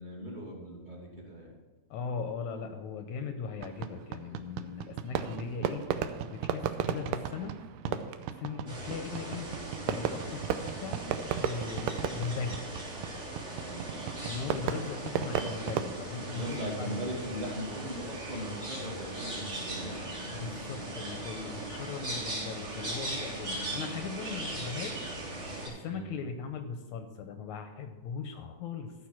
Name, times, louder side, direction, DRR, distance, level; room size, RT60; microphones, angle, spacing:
voice 1, 0.0-1.5 13.5-14.2 16.2-20.0 25.9-26.2, equal, 15° right, -3 dB, 2.1 m, -39 dB
voice 2, 1.9-5.8 6.3-7.6 7.8-8.0 8.4-9.5 9.9-11.1 11.4-12.7 14.2-17.0 20.3-25.1 25.7-28.9, left 5 dB, 75° left, 6 dB, 1.9 m, -39 dB
Fireworks, 3.6-15.9, right 9 dB, 80° right, 2.1 m, -35 dB
sound 1, 8.7-25.7, right 1 dB, 35° right, 4.4 m, -39 dB
14.0 x 6.0 x 6.0 m, 1.2 s
omnidirectional pair, 3.8 m